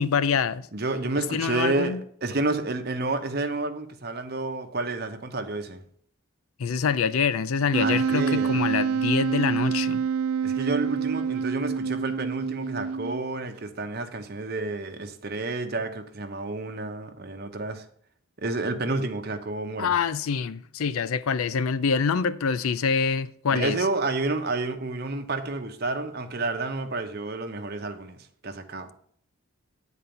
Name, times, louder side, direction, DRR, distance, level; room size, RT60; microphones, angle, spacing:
voice 1, 0.0-0.7 1.2-2.0 6.6-10.0 19.8-23.8, left 6 dB, 85° left, 0.5 m, -25 dB
voice 2, 0.7-5.8 7.8-8.5 10.4-17.8 18.4-19.9 23.5-28.9, right 3 dB, 45° right, 0.9 m, -30 dB
Wind instrument woodwind instrument, 7.7-13.4, right 6 dB, 80° right, 0.4 m, -27 dB
9.0 x 4.2 x 6.9 m
head